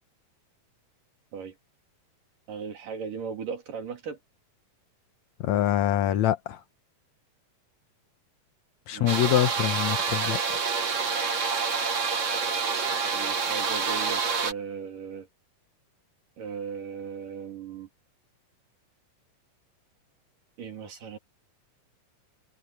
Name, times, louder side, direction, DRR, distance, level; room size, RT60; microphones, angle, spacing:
voice 1, 2.5-4.2 8.9-9.1 12.4-12.6 13.1-15.3 16.4-17.9 20.6-21.2, right 6 dB, 85° right, 5.0 m, -37 dB
voice 2, 5.4-6.6 8.9-10.4, left 11 dB, 70° left, 2.1 m, -24 dB
sound 1, 9.1-14.5, right 5 dB, 55° right, 0.8 m, -27 dB
omnidirectional pair, 3.7 m